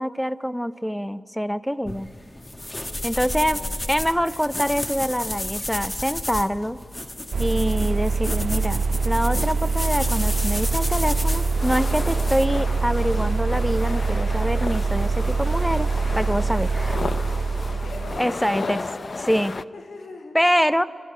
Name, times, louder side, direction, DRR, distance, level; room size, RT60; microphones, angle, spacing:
voice 1, 0.0-2.1 3.0-3.6 3.9-6.8 7.4-17.0 18.2-18.8 19.3-19.5 20.3-20.8, equal, ahead, 14 dB, 0.6 m, -25 dB
sound 1, 1.8-12.5, left 1 dB, 20° left, 1.2 m, -31 dB
voice 2, 3.2-4.2 17.7-18.8 19.7-20.4, left 3 dB, 80° left, 3 dB, 1.8 m, -39 dB
sound 2, 7.3-18.2, right 4 dB, 70° right, 0.5 m, -24 dB
sound 3, 10.7-19.6, left 3 dB, 45° left, 0.5 m, -34 dB
29.0 x 11.0 x 10.0 m, 2.2 s
wide cardioid pair, 115°, 0 cm